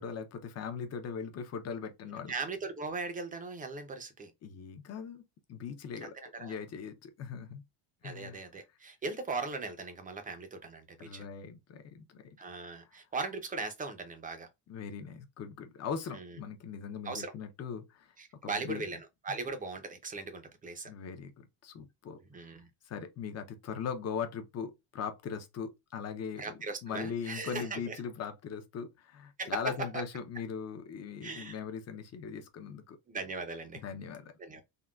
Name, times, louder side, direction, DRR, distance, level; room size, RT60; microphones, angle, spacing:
voice 1, 0.0-2.3 4.4-7.6 8.0-8.4 11.0-12.2 14.7-18.1 18.4-18.8 20.9-21.3 21.6-22.2 22.9-26.5 26.8-33.0 33.8-34.2, left 6 dB, 35° left, 0.5 m, -40 dB
voice 2, 2.3-4.3 6.0-6.6 8.0-11.3 12.4-14.5 16.1-16.4 17.0-17.3 18.2-20.9 22.3-22.7 26.4-28.0 29.4-30.0 31.2-31.6 33.1-33.8 34.4-34.6, right 4 dB, 20° right, 0.5 m, -39 dB
3.7 x 2.1 x 2.2 m
cardioid pair, 165°, 44 cm